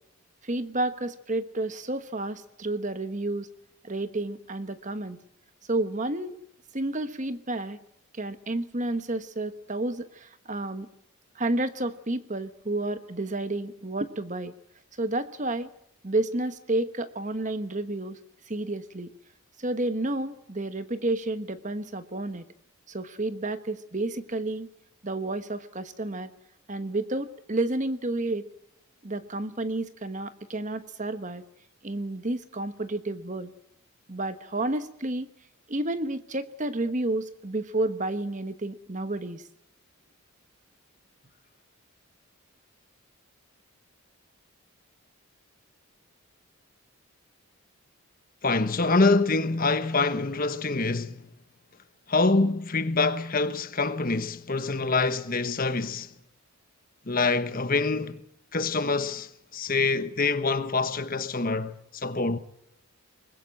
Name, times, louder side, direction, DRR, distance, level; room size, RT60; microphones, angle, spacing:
voice 1, 0.4-3.5 3.8-5.2 5.7-6.4 6.7-7.8 8.1-10.9 11.3-14.5 15.0-15.7 16.0-18.2 18.5-19.1 19.6-22.4 22.9-24.7 25.0-26.3 26.7-28.5 29.0-31.4 31.8-33.5 34.1-35.3 35.7-39.4, right 2 dB, 35° right, 1.2 m, -30 dB
voice 2, 48.4-51.2 52.1-56.1 57.1-58.2 58.5-62.4, left 3 dB, 40° left, 1.2 m, -25 dB
23.0 x 21.0 x 7.7 m
head